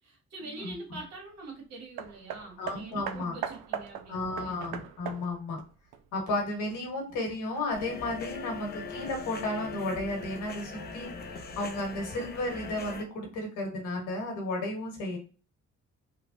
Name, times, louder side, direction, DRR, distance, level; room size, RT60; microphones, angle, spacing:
voice 1, 0.0-4.6, right 3 dB, 60° right, 1 dB, 1.3 m, -44 dB
voice 2, 0.6-1.0 2.6-3.4 4.1-5.6 6.1-15.2, left 2 dB, 90° left, 2 dB, 1.2 m, -33 dB
Hammer, 2.0-6.7 7.5-7.6, right 8 dB, 80° right, 0.5 m, -40 dB
sound 1, 7.7-13.0, left 4 dB, 35° left, 0.5 m, -40 dB
3.1 x 2.1 x 2.5 m, 0.35 s
cardioid pair, 90°, 30 cm